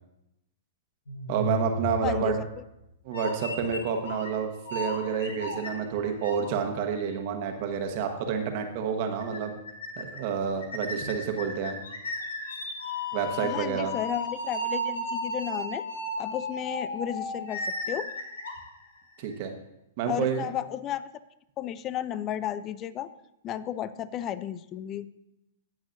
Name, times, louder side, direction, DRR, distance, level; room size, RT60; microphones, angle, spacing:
sound 1, 1.1-2.6 3.1-4.3 4.6-6.5 7.0-7.1 8.1-8.2 8.4-8.5 8.8-8.9 9.2-9.4 9.6-10.2 10.6-19.3, left 1 dB, 85° left, 1.5 m, -34 dB
voice 1, 1.3-2.3 3.0-9.5 10.0-11.8 13.1-13.9 19.2-19.5 20.0-20.5, right 6 dB, 50° right, 5 dB, 1.2 m, -29 dB
voice 2, 2.0-2.5 13.4-15.9 16.2-18.1 20.1-21.1 21.6-23.1 23.4-25.1, left 10 dB, 30° left, 16 dB, 0.4 m, -33 dB
16.5 x 6.2 x 2.6 m, 0.85 s
hypercardioid pair, 125°, 0 cm